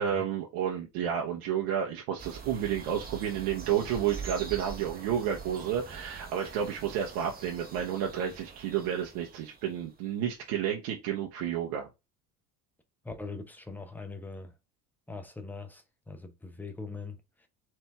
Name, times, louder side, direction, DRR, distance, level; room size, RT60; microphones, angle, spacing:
voice 1, 0.0-11.9, right 9 dB, 55° right, 1.1 m, -31 dB
sound 1, 2.2-9.9, right 6 dB, 20° right, 1.1 m, -44 dB
voice 2, 13.0-14.5 15.1-17.5, left 3 dB, 5° left, 0.9 m, -42 dB
4.5 x 3.3 x 3.4 m
figure-of-eight pair, 65°, 49 cm